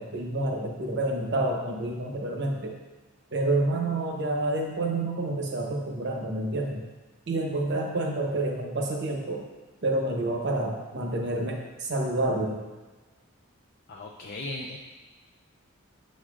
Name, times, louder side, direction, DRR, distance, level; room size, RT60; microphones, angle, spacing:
voice 1, 0.0-2.7 3.3-6.8 7.3-9.4 9.8-12.6, right 2 dB, 55° right, 1 dB, 0.9 m, -28 dB
voice 2, 13.9-14.8, left 2 dB, 45° left, 0 dB, 0.4 m, -37 dB
7.4 x 6.5 x 2.4 m, 1.3 s
head